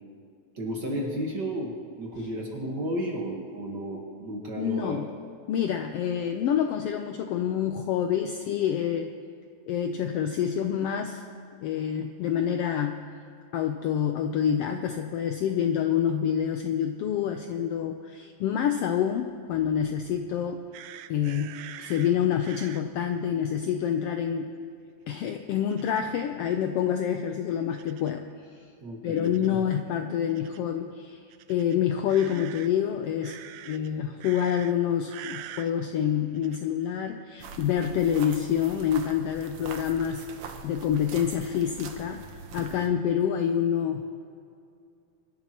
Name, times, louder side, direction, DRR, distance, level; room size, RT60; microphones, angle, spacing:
voice 1, 0.5-5.0 28.8-29.6, equal, 45° right, -1 dB, 1.6 m, -33 dB
voice 2, 4.6-5.1 5.5-9.1 9.7-11.2 11.6-13.0 13.5-20.7 21.1-24.5 25.1-28.3 29.0-31.2 31.5-40.2 40.6-42.2 42.5-44.2, left 9 dB, 90° left, 6 dB, 1.3 m, -27 dB
sound 1, 20.7-22.8 25.7-26.0 27.7-28.2 29.2-29.5 30.3-30.6 31.3-32.7 33.2-33.9 34.2-34.7 35.1-35.7 36.3-36.6, right 12 dB, 80° right, 1.7 m, -44 dB
sound 2, 37.4-42.9, right 5 dB, 65° right, 1.5 m, -43 dB
23.5 x 11.5 x 2.9 m, 2.4 s
omnidirectional pair, 3.4 m